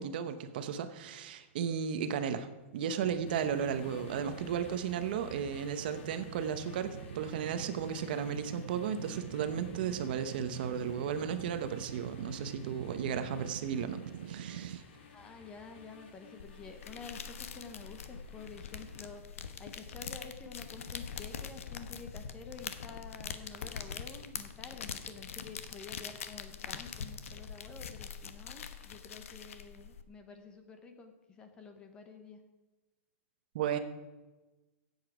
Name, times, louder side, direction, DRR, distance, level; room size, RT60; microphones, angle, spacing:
voice 1, 0.0-2.5 2.7-14.0 14.3-14.8 33.5-33.8, right 8 dB, 45° right, 10 dB, 0.9 m, -34 dB
sound 1, 3.0-14.8, right 8 dB, 75° right, 0.6 m, -45 dB
sound 2, 3.2-19.2, left 5 dB, 50° left, 2.1 m, -54 dB
voice 2, 15.1-19.3 19.6-32.4, left 4 dB, 10° left, 6 dB, 0.8 m, -49 dB
sound 3, 16.4-30.0, left 7 dB, 80° left, 1.0 m, -43 dB
16.0 x 8.1 x 4.9 m, 1.1 s
supercardioid pair, 180°, 7 cm